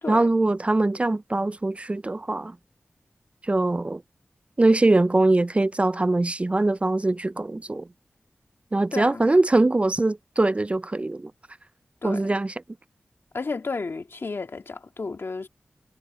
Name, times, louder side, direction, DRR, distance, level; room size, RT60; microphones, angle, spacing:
voice 1, 0.1-2.6 3.4-4.0 4.6-7.9 8.7-11.3 12.0-12.5, right 2 dB, 30° right, 0.3 m, -22 dB
voice 2, 8.9-9.2 12.0-12.3 13.3-15.5, left 4 dB, 65° left, 1.9 m, -32 dB
cardioid pair, 50°, 4 cm